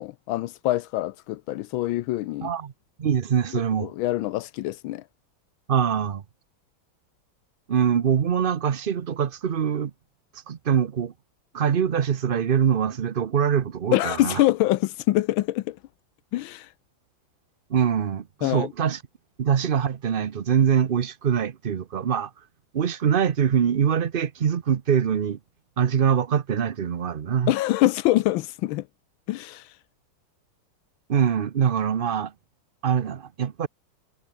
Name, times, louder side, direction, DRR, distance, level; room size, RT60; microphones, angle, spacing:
voice 1, 0.0-2.5 3.5-5.0 13.9-15.8 16.3-16.7 18.4-18.7 27.5-28.8 29.3-29.7, left 16 dB, 90° left, 1.5 m, -25 dB
voice 2, 2.4-2.7 3.0-3.9 5.7-6.2 7.7-9.9 10.5-11.1 11.5-14.4 17.7-19.0 19.4-22.3 22.7-25.4 25.8-27.5 31.1-32.3 32.8-33.7, right 7 dB, 85° right, 0.4 m, -23 dB
omnidirectional pair, 2.1 m